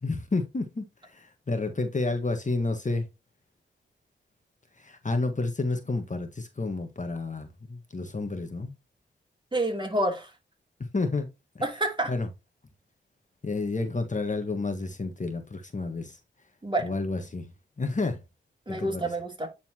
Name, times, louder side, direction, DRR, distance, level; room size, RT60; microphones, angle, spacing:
voice 1, 0.0-3.1 4.8-8.7 10.9-11.3 12.1-12.3 13.4-16.2 16.8-17.5 17.8-18.2 18.7-19.1, left 3 dB, 40° left, 1.4 m, -30 dB
voice 2, 9.5-10.3 11.6-12.1 16.6-16.9 18.7-19.5, right 1 dB, 25° right, 2.9 m, -28 dB
9.2 x 4.1 x 2.9 m
cardioid pair, 50°, 20 cm